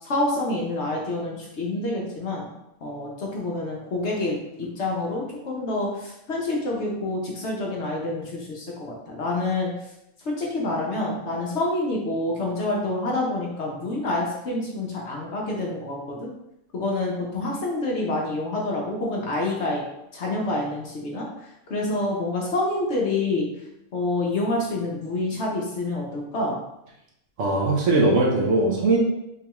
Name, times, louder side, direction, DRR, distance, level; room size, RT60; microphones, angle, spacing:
voice 1, 0.0-2.5 2.8-9.7 10.2-16.3 16.7-19.8 20.1-21.3 21.7-23.5 23.9-26.6, left 2 dB, 55° left, -2 dB, 1.0 m, -27 dB
voice 2, 27.4-29.0, right 2 dB, 65° right, -2 dB, 1.1 m, -20 dB
3.7 x 3.4 x 2.9 m, 0.85 s
omnidirectional pair, 1.5 m